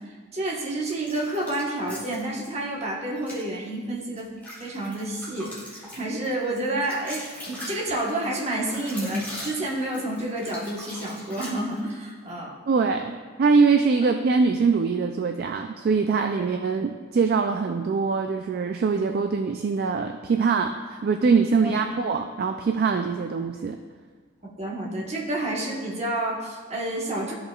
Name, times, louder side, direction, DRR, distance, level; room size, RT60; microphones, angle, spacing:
voice 1, 0.3-4.3 4.6-12.5 21.6-21.7 24.4-27.3, right 1 dB, 30° right, -3 dB, 1.2 m, -29 dB
sound 1, 0.8-2.5 3.1-3.4 4.0-12.0, left 1 dB, 10° left, 1.8 m, -40 dB
voice 2, 12.7-23.8, right 5 dB, 50° right, 5 dB, 0.3 m, -23 dB
13.0 x 5.4 x 2.3 m, 1.5 s
head